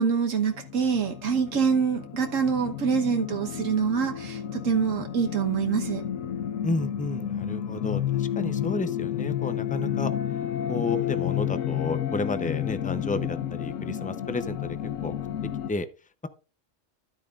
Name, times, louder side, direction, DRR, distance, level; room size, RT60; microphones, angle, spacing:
voice 1, 0.0-6.0, right 6 dB, 80° right, 1.5 m, -25 dB
sound 1, 0.5-15.7, left 10 dB, 85° left, 1.1 m, -31 dB
voice 2, 6.6-10.1 10.7-14.6 15.0-15.1 15.7-15.9, left 2 dB, 10° left, 0.4 m, -31 dB
12.0 x 9.1 x 2.4 m
omnidirectional pair, 1.3 m